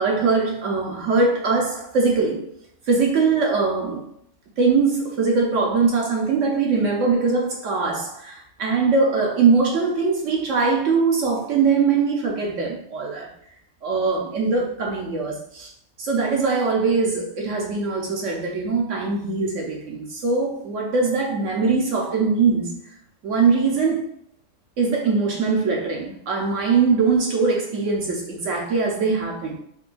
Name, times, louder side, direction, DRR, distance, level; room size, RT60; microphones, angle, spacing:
voice 1, 0.0-2.4 2.9-4.0 4.6-13.3 13.8-15.7 16.0-22.7 23.2-24.0 24.8-29.6, right 4 dB, 60° right, 1.0 m, -21 dB
4.4 x 2.2 x 2.5 m
omnidirectional pair, 1.6 m